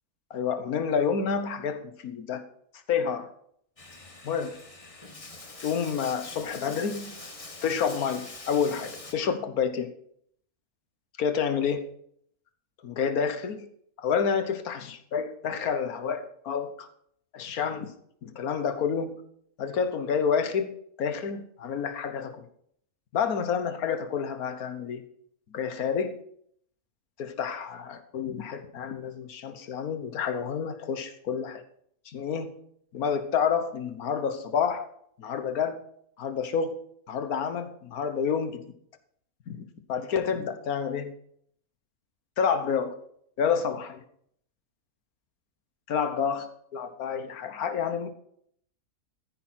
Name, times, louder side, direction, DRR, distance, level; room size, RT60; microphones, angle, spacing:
voice 1, 0.3-2.4 2.9-3.3 4.2-4.5 5.6-7.1 7.6-9.9 11.2-11.8 12.8-13.6 14.0-16.9 17.3-17.9 18.2-19.2 19.6-20.7 21.0-22.5 23.1-25.0 25.5-26.2 27.2-31.6 32.1-32.5 32.9-34.9 35.2-35.8 36.2-36.8 37.1-38.6 39.5-39.6 39.9-41.1 42.4-42.9 43.4-44.0 45.9-48.1, left 6 dB, 90° left, 9 dB, 1.5 m, -29 dB
Bathtub (filling or washing), 3.8-9.1, left 2 dB, 25° left, 1.4 m, -44 dB
14.0 x 10.0 x 4.4 m, 0.67 s
omnidirectional pair, 1.5 m